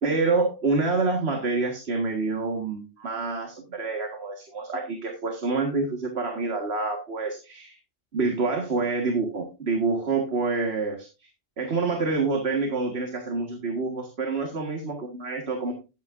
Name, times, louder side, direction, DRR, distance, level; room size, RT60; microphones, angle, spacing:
voice 1, 0.0-7.8 8.1-11.3 11.6-15.7, right 3 dB, 55° right, 3 dB, 1.8 m, -27 dB
12.5 x 9.2 x 2.5 m, 0.28 s
omnidirectional pair, 1.3 m